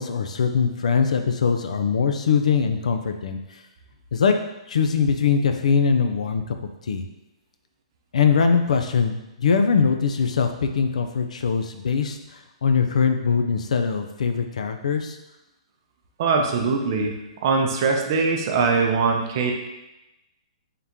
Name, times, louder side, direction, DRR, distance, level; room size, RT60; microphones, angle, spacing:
voice 1, 0.0-3.4 4.1-4.3 4.7-6.6 6.9-7.1 8.1-12.2 12.6-15.2, left 6 dB, 80° left, 6 dB, 0.4 m, -22 dB
voice 2, 16.2-17.1 17.4-19.5, right 4 dB, 35° right, 2 dB, 0.5 m, -21 dB
3.7 x 2.8 x 3.5 m, 0.96 s
hypercardioid pair, 165°, 4 cm